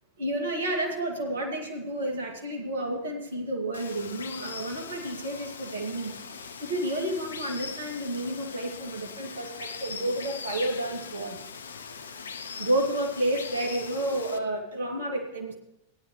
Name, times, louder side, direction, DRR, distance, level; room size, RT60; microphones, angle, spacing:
voice 1, 0.2-11.4 12.6-15.5, right 1 dB, 65° right, 1 dB, 2.5 m, -31 dB
Water, 3.7-14.4, left 6 dB, 70° left, 0.5 m, -41 dB
16.5 x 10.5 x 3.3 m, 0.87 s
figure-of-eight pair, 90°, 0 cm